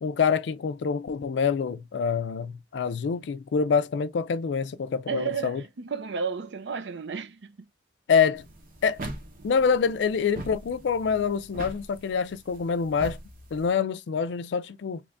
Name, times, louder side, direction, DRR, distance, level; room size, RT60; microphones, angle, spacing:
voice 1, 0.0-5.6 8.1-8.4 8.8-9.0 9.4-13.2 13.5-15.0, left 6 dB, 70° left, 0.4 m, -26 dB
voice 2, 5.1-7.7, right 5 dB, 70° right, 0.5 m, -32 dB
sound 1, 8.3-13.7, right 1 dB, 50° right, 0.9 m, -42 dB
3.0 x 2.5 x 3.3 m
head